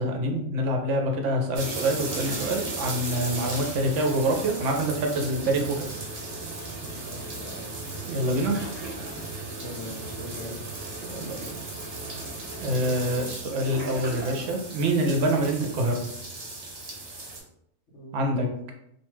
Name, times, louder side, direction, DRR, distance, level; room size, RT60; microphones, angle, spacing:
voice 1, 0.0-5.9 8.0-8.6 11.0-11.6 12.6-16.0 18.1-18.5, right 1 dB, 70° right, 2 dB, 0.9 m, -26 dB
sound 1, 1.5-17.4, right 2 dB, 50° right, 0.4 m, -36 dB
voice 2, 6.8-7.7 9.6-10.6 17.9-18.7, equal, 60° left, -2 dB, 1.0 m, -41 dB
2.7 x 2.3 x 3.1 m, 0.75 s
omnidirectional pair, 1.4 m